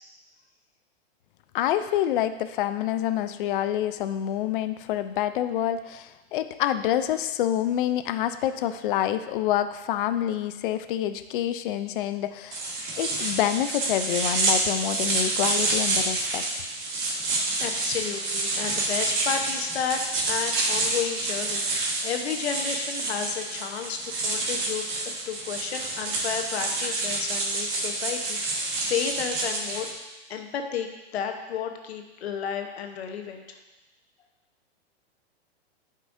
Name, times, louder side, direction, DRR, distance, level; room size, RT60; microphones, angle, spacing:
voice 1, 1.5-16.4, left 11 dB, 55° left, 10 dB, 0.5 m, -27 dB
sound 1, 12.5-29.9, right 2 dB, 50° right, 1.7 m, -28 dB
voice 2, 17.6-20.0 20.3-29.9 30.3-33.6, left 8 dB, 75° left, 4 dB, 1.0 m, -32 dB
9.8 x 5.5 x 2.6 m, 1.1 s
hypercardioid pair, 145°, 32 cm